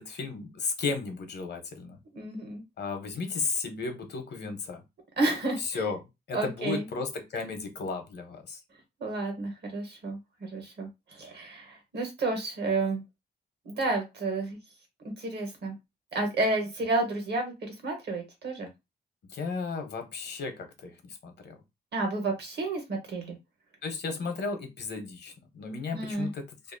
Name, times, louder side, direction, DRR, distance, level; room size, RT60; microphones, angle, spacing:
voice 1, 0.0-2.0 2.8-4.8 5.6-6.0 6.3-8.6 19.3-21.5 23.8-26.7, left 4 dB, 70° left, 0.8 m, -34 dB
voice 2, 2.1-2.6 5.2-5.8 6.3-6.9 9.0-13.0 13.6-14.6 15.0-15.7 16.1-18.7 21.9-23.4 25.9-26.3, right 2 dB, 70° right, 1.2 m, -31 dB
2.7 x 2.4 x 2.6 m
cardioid pair, 100°, 18 cm